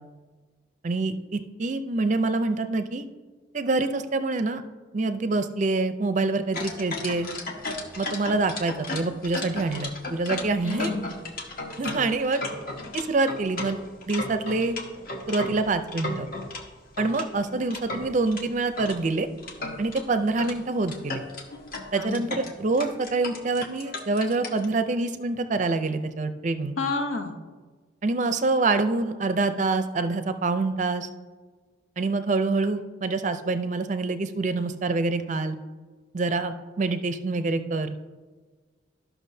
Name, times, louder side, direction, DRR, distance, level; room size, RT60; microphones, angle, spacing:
voice 1, 0.8-3.1 3.5-4.6 4.9-7.3 8.0-10.9 11.8-12.4 12.9-13.8 14.1-14.8 15.3-16.3 17.0-19.3 19.8-21.2 21.9-26.8 28.0-31.1 32.0-35.6 36.1-37.9, right 3 dB, 35° right, 10 dB, 0.4 m, -26 dB
sound 1, 6.5-16.6 17.0-19.0 19.4-20.0 20.4-20.6 20.8-24.7, left 2 dB, 45° left, 1.0 m, -35 dB
voice 2, 10.6-11.2 21.9-22.3 26.8-27.4, left 3 dB, 85° left, 5 dB, 1.0 m, -30 dB
13.5 x 5.8 x 2.7 m, 1.4 s
head